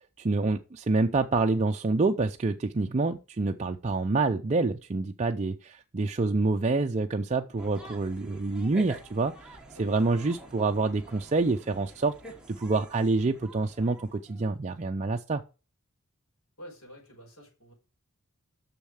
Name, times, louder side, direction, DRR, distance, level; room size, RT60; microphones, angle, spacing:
voice 1, 0.2-12.1 12.5-15.4, right 3 dB, 30° right, 0.5 m, -27 dB
sound 1, 7.6-14.4, right 1 dB, 5° right, 1.4 m, -48 dB
voice 2, 9.7-10.2 16.6-17.7, equal, 65° left, 4.9 m, -49 dB
6.8 x 6.4 x 6.3 m
head